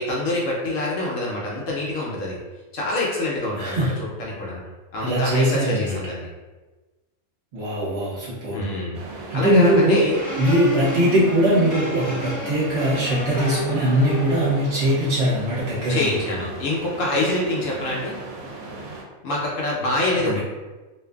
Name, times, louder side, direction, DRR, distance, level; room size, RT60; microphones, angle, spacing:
voice 1, 0.0-2.4 2.7-4.6 4.9-6.3 8.5-10.2 15.9-18.1 19.2-20.4, left 1 dB, 70° left, -4 dB, 0.9 m, -25 dB
voice 2, 3.6-3.9 5.0-5.9 7.5-8.6 9.3-10.1 10.4-16.1 20.2-20.4, equal, 55° right, -8 dB, 0.9 m, -21 dB
sound 1, 8.9-19.0, right 2 dB, 80° right, 1.0 m, -37 dB
sound 2, 10.1-14.7, left 1 dB, 10° left, 0.7 m, -31 dB
2.5 x 2.5 x 2.2 m, 1.2 s
omnidirectional pair, 1.5 m